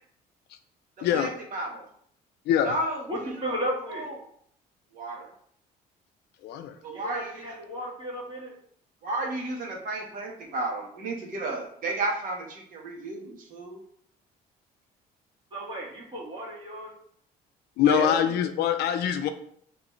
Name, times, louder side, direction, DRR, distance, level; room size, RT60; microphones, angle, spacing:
voice 1, 1.1-1.8 2.6-3.0 3.9-4.1 4.9-5.3 6.8-7.3 9.0-13.8 17.8-18.1, right 2 dB, 55° right, -1 dB, 1.3 m, -32 dB
voice 2, 3.1-4.1 6.9-8.5 15.5-16.9, equal, 30° right, -4 dB, 2.0 m, -34 dB
voice 3, 6.4-6.8 17.8-19.3, left 9 dB, 75° left, 8 dB, 0.5 m, -24 dB
5.1 x 3.2 x 3.1 m, 0.63 s
cardioid pair, 110°, 17 cm